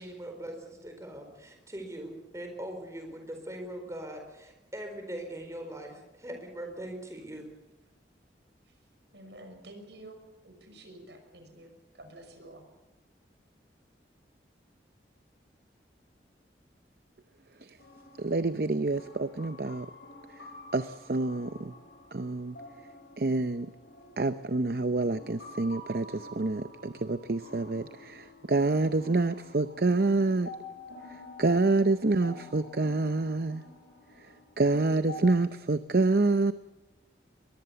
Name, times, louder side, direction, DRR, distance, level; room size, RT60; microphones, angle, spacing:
voice 1, 0.0-7.5, right 1 dB, 15° right, 4.4 m, -41 dB
voice 2, 9.1-12.7, right 1 dB, 80° right, 5.8 m, -50 dB
sound 1, 17.8-35.3, left 2 dB, 85° left, 5.8 m, -49 dB
voice 3, 18.2-19.8 20.4-20.5 20.7-21.7 22.1-22.6 23.2-23.7 24.2-30.5 31.1-33.6 34.2-36.5, right 3 dB, 55° right, 0.7 m, -27 dB
22.5 x 22.0 x 7.0 m
head